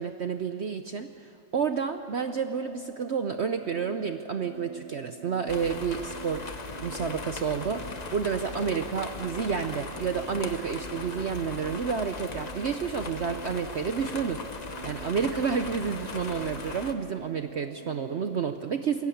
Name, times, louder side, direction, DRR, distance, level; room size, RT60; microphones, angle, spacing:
voice 1, 0.0-6.5 6.8-14.4 14.8-19.1, right 6 dB, 60° right, 8 dB, 0.7 m, -30 dB
sound 1, 2.2-18.2, right 4 dB, 65° left, 5.6 m, -46 dB
sound 2, 5.5-16.9, left 4 dB, 30° left, 0.8 m, -39 dB
22.0 x 16.5 x 8.5 m, 2.5 s
omnidirectional pair, 1.9 m